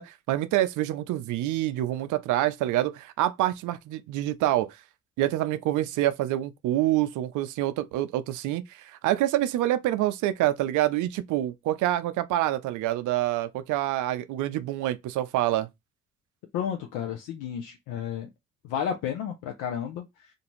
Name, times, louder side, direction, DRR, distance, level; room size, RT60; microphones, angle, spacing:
voice 1, 0.0-4.8 5.2-15.7, right 14 dB, 75° right, 0.5 m, -26 dB
voice 2, 16.5-18.3 18.6-20.3, left 8 dB, 75° left, 0.6 m, -32 dB
2.5 x 2.3 x 3.0 m
hypercardioid pair, 45°, 31 cm